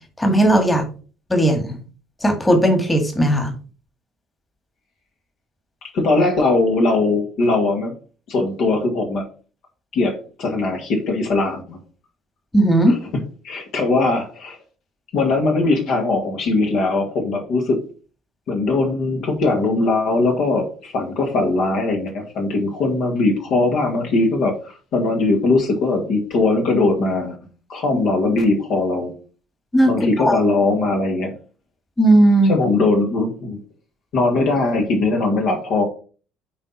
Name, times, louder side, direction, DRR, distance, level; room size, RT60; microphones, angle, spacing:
voice 1, 0.2-0.8 1.3-1.8 2.2-3.5 12.5-12.9 27.9-28.0 29.7-30.4 32.0-32.5, right 1 dB, 15° left, 5 dB, 2.0 m, -16 dB
voice 2, 5.9-7.9 8.3-9.2 9.9-11.8 12.9-13.0 13.4-14.6 15.1-17.8 18.5-27.4 27.7-29.1 29.9-31.3 32.5-33.6 34.1-35.8, left 3 dB, 55° left, 2 dB, 2.0 m, -20 dB
8.6 x 4.5 x 4.1 m, 0.37 s
figure-of-eight pair, 55°, 0 cm